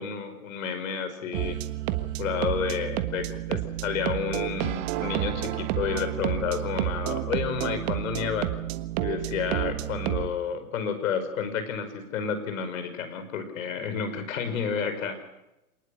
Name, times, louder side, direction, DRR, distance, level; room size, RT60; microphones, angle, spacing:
voice 1, 0.0-1.6 2.2-8.5 9.0-15.2, left 6 dB, 60° left, 10 dB, 5.5 m, -30 dB
sound 1, 1.3-10.3, right 15 dB, 40° right, 1.5 m, -30 dB
27.5 x 19.5 x 6.6 m, 0.92 s
hypercardioid pair, 120°, 44 cm